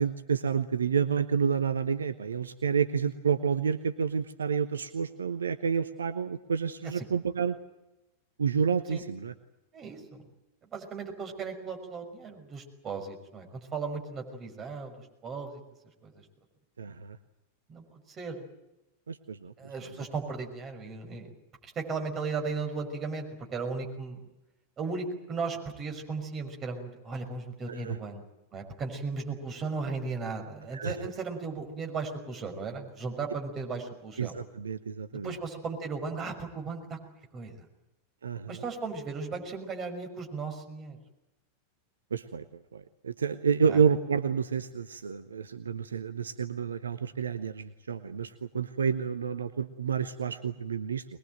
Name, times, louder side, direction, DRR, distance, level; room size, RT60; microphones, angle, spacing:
voice 1, 0.0-7.6 8.4-9.3 16.8-17.2 19.1-19.5 27.7-28.0 30.7-31.1 34.2-35.3 38.2-38.6 42.1-51.0, right 6 dB, 70° right, 11 dB, 0.9 m, -29 dB
voice 2, 9.7-10.3 10.7-15.6 16.0-16.2 17.7-18.4 19.6-21.3 21.6-24.2 24.8-28.2 28.5-34.3 35.1-37.0 37.3-37.7 38.5-41.0 43.7-43.8, right 4 dB, 25° right, 4 dB, 5.9 m, -36 dB
23.0 x 21.5 x 9.1 m, 0.96 s
figure-of-eight pair, 90°, 0 cm